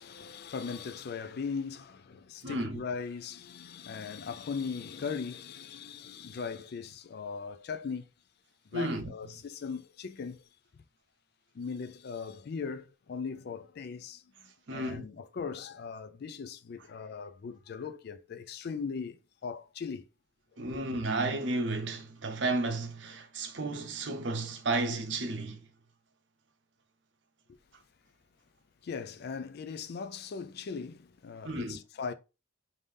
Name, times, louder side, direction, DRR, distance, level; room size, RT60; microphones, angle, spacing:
voice 1, 0.0-8.1 8.7-10.4 11.5-20.1 20.7-20.8 27.5-27.6 28.8-32.1, left 5 dB, 55° left, 0.4 m, -39 dB
voice 2, 2.4-2.8 8.7-9.1 14.7-15.0 20.6-25.6 31.4-31.8, right 2 dB, 70° right, 0.7 m, -32 dB
3.6 x 2.6 x 3.3 m
head